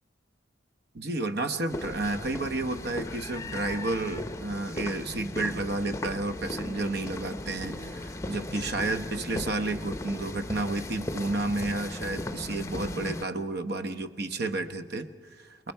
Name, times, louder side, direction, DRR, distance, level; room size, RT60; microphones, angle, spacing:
voice 1, 0.9-15.7, right 2 dB, 55° right, 9 dB, 1.0 m, -31 dB
sound 1, 1.7-13.2, left 1 dB, 15° left, 0.7 m, -37 dB
29.5 x 20.5 x 4.6 m, 1.5 s
head